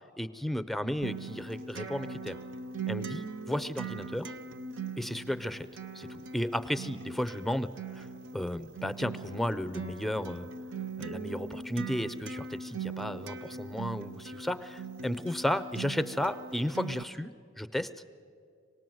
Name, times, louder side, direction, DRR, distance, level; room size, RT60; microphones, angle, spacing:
voice 1, 0.2-2.4 2.9-4.3 5.0-5.7 5.9-7.7 8.0-8.1 8.3-10.5 11.0-17.3 17.6-17.9, left 1 dB, ahead, 11 dB, 0.5 m, -33 dB
Acoustic guitar, 1.0-17.0, right 5 dB, 90° right, 0.8 m, -41 dB
25.5 x 18.5 x 7.8 m, 2.4 s
head